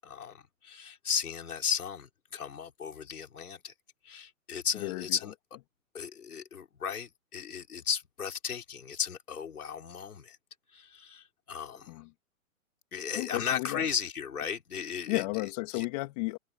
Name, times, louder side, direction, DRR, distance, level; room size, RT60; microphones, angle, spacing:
voice 1, 0.0-3.7 4.0-5.3 5.9-10.4 10.7-12.0 12.9-15.2 15.7-15.9, left 7 dB, 85° left, 6.2 m, -35 dB
voice 2, 4.8-5.2 11.9-12.1 13.1-13.9 15.1-16.4, left 24 dB, 25° left, 2.8 m, -33 dB
hypercardioid pair, 165°, 43 cm